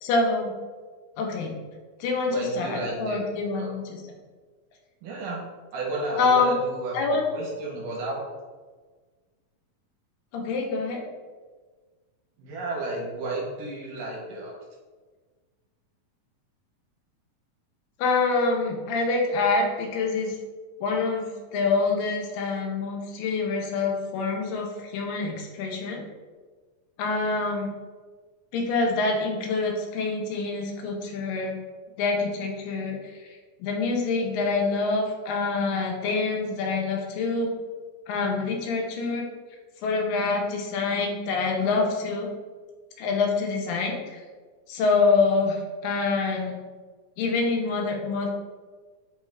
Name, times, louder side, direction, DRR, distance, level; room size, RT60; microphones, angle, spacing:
voice 1, 0.0-0.5 1.2-1.5 2.0-3.8 6.2-6.5 6.9-7.3 10.3-11.1 18.0-20.4 20.8-26.0 27.0-27.7 28.5-31.6 32.0-33.0 33.6-37.5 38.1-39.3 39.8-42.3 43.0-44.2 44.7-46.6 47.2-48.3, left 3 dB, 80° left, 1 dB, 2.3 m, -26 dB
voice 2, 2.3-3.2 3.5-3.7 5.0-5.4 5.7-8.2 12.4-14.6, right 2 dB, 75° right, -3 dB, 2.3 m, -32 dB
5.3 x 2.3 x 3.1 m, 1.4 s
omnidirectional pair, 4.0 m